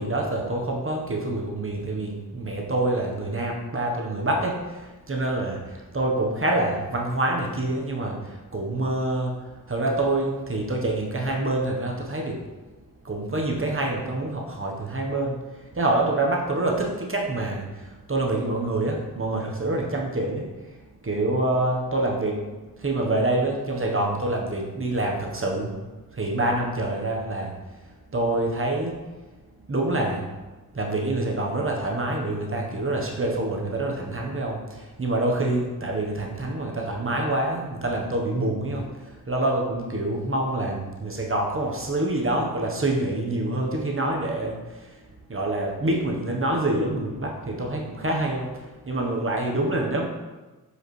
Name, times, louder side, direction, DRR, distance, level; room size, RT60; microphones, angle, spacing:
voice 1, 0.0-12.4 13.0-20.4 20.7-22.4 22.7-25.8 26.1-29.0 29.6-30.3 30.7-45.0 45.3-50.1, right 2 dB, 35° right, -1 dB, 1.1 m, -26 dB
7.6 x 4.9 x 3.2 m, 1.2 s
wide cardioid pair, 100°, 37 cm